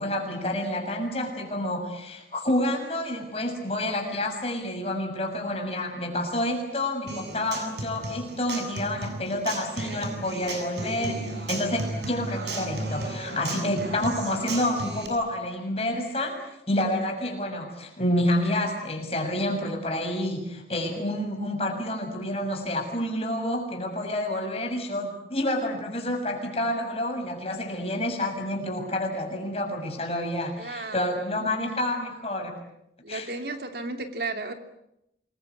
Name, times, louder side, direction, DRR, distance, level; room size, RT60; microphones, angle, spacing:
voice 1, 0.0-32.5 33.1-33.3, left 1 dB, 35° left, 3 dB, 6.9 m, -29 dB
Human voice / Acoustic guitar, 7.1-15.1, right 2 dB, 80° right, 7.4 m, -34 dB
voice 2, 30.6-31.5 33.0-34.5, right 3 dB, 65° right, 6 dB, 2.8 m, -34 dB
28.0 x 22.5 x 8.6 m, 0.81 s
head